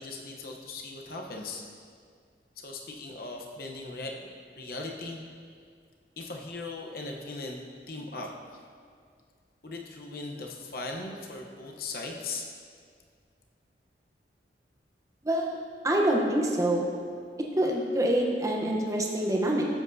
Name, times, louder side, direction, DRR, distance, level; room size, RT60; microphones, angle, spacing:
voice 1, 0.0-1.6 2.6-4.3 4.6-5.2 6.2-7.6 7.9-8.3 9.6-12.5, left 3 dB, 55° left, 1 dB, 0.9 m, -38 dB
voice 2, 15.2-15.6 15.8-16.9 17.6-19.6, right 1 dB, 20° right, -1 dB, 0.9 m, -26 dB
11.5 x 7.9 x 2.7 m, 2.1 s
head